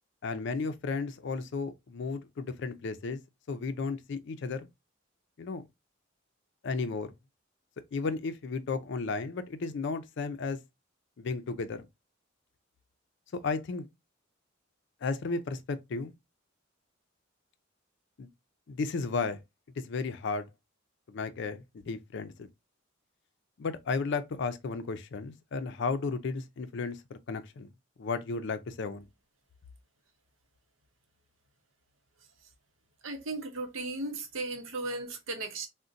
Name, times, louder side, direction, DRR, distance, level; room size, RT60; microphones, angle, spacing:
voice 1, 0.2-3.2 3.5-4.7 5.4-5.7 6.6-7.1 7.9-10.6 11.2-11.8 13.3-13.9 15.0-16.1 18.2-18.3 18.7-19.4 19.8-20.5 21.1-22.5 23.6-27.7 28.0-29.1, left 4 dB, 60° left, 0.4 m, -34 dB
voice 2, 33.0-35.7, right 2 dB, 80° right, 0.8 m, -36 dB
3.9 x 2.1 x 2.4 m
head